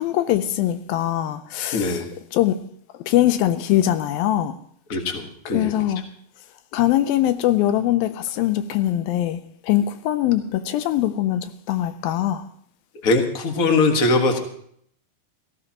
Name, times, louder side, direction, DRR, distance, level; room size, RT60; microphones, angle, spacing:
voice 1, 0.0-2.0 2.3-2.6 3.1-4.5 5.5-6.0 6.7-12.4, left 13 dB, 80° left, 2.5 m, -22 dB
voice 2, 1.7-2.1 4.9-5.7 13.0-14.4, left 3 dB, 60° left, 0.9 m, -21 dB
18.0 x 16.0 x 2.9 m
omnidirectional pair, 4.2 m